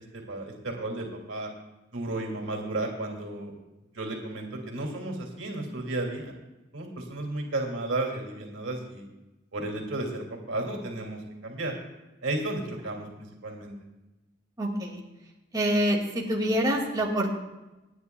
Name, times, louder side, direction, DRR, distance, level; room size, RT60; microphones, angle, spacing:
voice 1, 0.0-1.5 1.9-3.5 3.9-6.3 6.7-9.0 9.5-11.8 12.2-13.7, right 2 dB, 85° right, 1 dB, 2.6 m, -33 dB
voice 2, 14.6-15.0 15.5-17.3, equal, 20° right, -2 dB, 2.2 m, -26 dB
28.5 x 9.5 x 2.3 m, 1.0 s
head